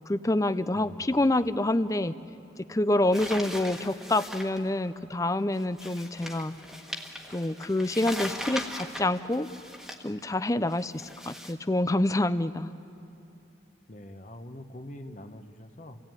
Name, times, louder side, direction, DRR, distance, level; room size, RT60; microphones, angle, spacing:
voice 1, 0.1-2.1 2.6-6.5 7.3-9.5 10.0-12.7, left 1 dB, 15° left, 13 dB, 0.5 m, -27 dB
voice 2, 0.7-1.3 13.9-16.0, left 1 dB, 40° left, 7 dB, 1.1 m, -44 dB
sound 1, 3.1-4.6 5.5-10.1 10.7-11.5, equal, ahead, 1.5 m, -39 dB
30.0 x 17.0 x 9.1 m, 2.8 s
head